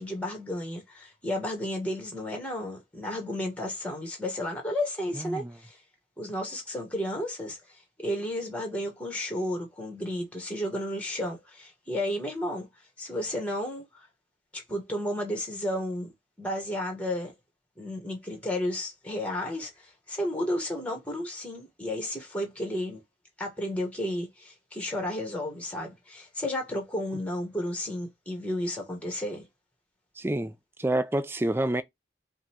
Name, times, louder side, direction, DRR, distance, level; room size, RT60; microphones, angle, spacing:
voice 1, 0.0-5.8 6.2-12.7 13.0-14.1 14.5-16.1 16.4-17.3 17.8-23.0 23.4-29.5, left 1 dB, 5° left, 1.3 m, -32 dB
voice 2, 5.1-5.5 30.2-30.5 30.8-31.8, right 1 dB, 10° right, 0.4 m, -28 dB
5.1 x 2.3 x 2.8 m
head